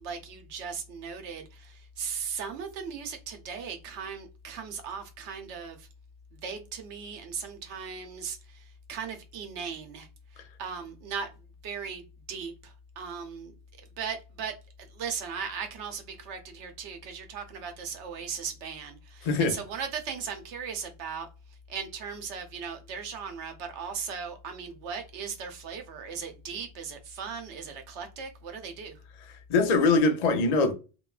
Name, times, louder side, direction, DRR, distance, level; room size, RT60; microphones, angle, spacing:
voice 1, 0.0-5.9 6.3-10.1 10.3-11.3 11.6-13.5 14.0-14.5 14.9-21.3 21.7-29.0, right 6 dB, 80° right, 0.9 m, -38 dB
voice 2, 19.2-19.6 29.5-30.7, left 3 dB, 55° left, 0.4 m, -22 dB
2.9 x 2.2 x 2.3 m
omnidirectional pair, 1.2 m